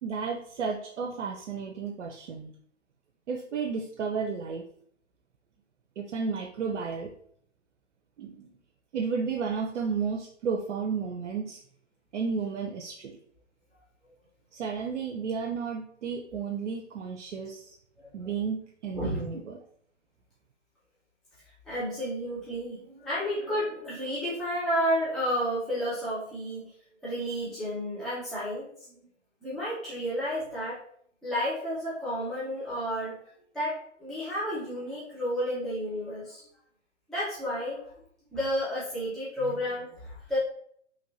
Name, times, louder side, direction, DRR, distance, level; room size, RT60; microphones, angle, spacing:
voice 1, 0.0-2.5 3.3-4.6 6.0-7.1 8.2-8.5 8.9-11.6 12.1-13.1 14.5-17.8 18.1-19.6, right 5 dB, 75° right, 2 dB, 0.5 m, -32 dB
voice 2, 21.7-26.7 27.0-29.0 29.4-30.8 31.2-33.2 33.5-36.4 37.1-37.8 38.3-40.4, equal, ahead, -10 dB, 0.5 m, -31 dB
2.9 x 2.6 x 2.8 m, 0.65 s
figure-of-eight pair, 110°, 36 cm